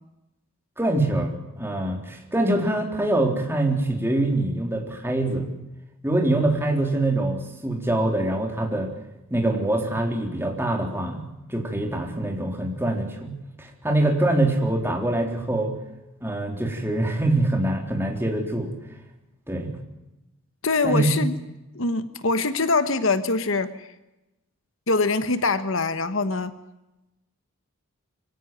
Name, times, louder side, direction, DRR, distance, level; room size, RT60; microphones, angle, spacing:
voice 1, 0.8-5.5 6.0-8.9 9.3-15.8 16.2-18.7 19.5-19.8 20.8-21.2, right 1 dB, 10° right, 2 dB, 3.9 m, -24 dB
voice 2, 20.6-21.3 21.7-23.9 24.9-26.5, left 3 dB, 60° left, 11 dB, 1.3 m, -23 dB
25.0 x 17.0 x 9.4 m, 0.96 s
head